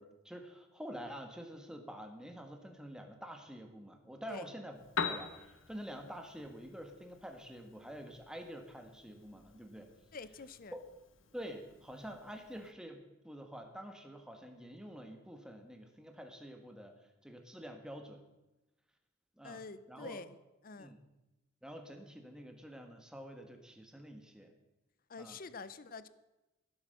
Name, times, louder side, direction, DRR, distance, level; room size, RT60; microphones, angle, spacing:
voice 1, 0.0-4.8 5.0-9.9 10.7-10.8 11.3-16.9 17.2-18.2 19.4-19.6 19.9-20.2 20.8-21.0 21.6-24.5 25.2-25.4, equal, 5° right, 5 dB, 1.3 m, -48 dB
Piano, 4.7-12.7, left 5 dB, 75° left, 1.0 m, -45 dB
voice 2, 10.1-10.7 19.4-20.4 20.6-20.9 25.1-26.1, left 4 dB, 45° left, 15 dB, 0.6 m, -47 dB
15.0 x 8.0 x 6.6 m, 1.0 s
head